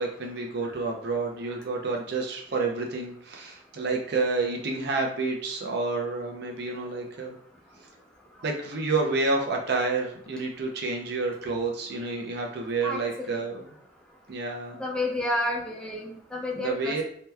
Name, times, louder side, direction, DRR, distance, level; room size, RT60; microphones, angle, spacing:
voice 1, 0.0-7.4 8.4-13.6 14.3-14.8 16.5-17.0, right 3 dB, 60° right, 0 dB, 0.6 m, -29 dB
voice 2, 12.8-13.4 14.8-17.0, left 1 dB, 5° left, -2 dB, 0.6 m, -31 dB
2.8 x 2.2 x 3.3 m, 0.63 s
head